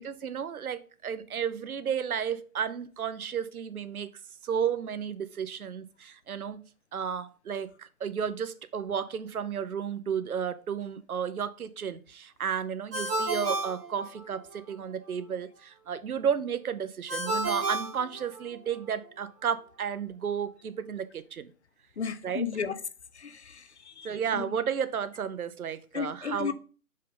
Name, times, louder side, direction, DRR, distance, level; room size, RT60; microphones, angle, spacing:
voice 1, 0.0-4.1 4.4-6.6 6.9-21.5 22.2-22.5 24.0-26.5, right 7 dB, 70° right, 0.8 m, -33 dB
Ringtone, 12.9-14.6 17.1-18.8, right 2 dB, 5° right, 0.7 m, -32 dB
voice 2, 22.0-22.8 23.1-24.5 25.9-26.5, left 6 dB, 50° left, 0.6 m, -34 dB
6.5 x 5.5 x 3.7 m
figure-of-eight pair, 145°, 45 cm